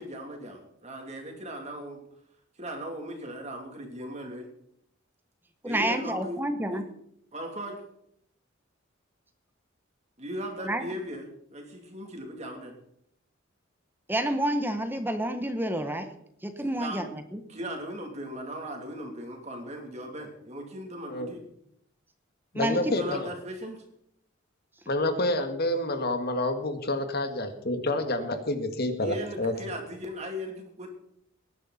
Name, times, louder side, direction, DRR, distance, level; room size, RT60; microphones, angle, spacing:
voice 1, 0.0-2.0 2.6-4.5 5.6-6.4 6.7-6.8 7.3-7.8 10.2-12.7 16.6-17.1 17.5-21.4 22.8-23.8 29.0-30.9, equal, 35° right, 2 dB, 3.0 m, -38 dB
voice 2, 5.6-6.9 10.6-10.9 14.1-16.2 16.4-17.4 22.5-22.8, right 1 dB, 10° right, 8 dB, 1.0 m, -29 dB
voice 3, 22.5-23.3 24.9-29.5, left 1 dB, 50° left, 7 dB, 1.9 m, -28 dB
20.0 x 11.0 x 4.2 m, 0.71 s
head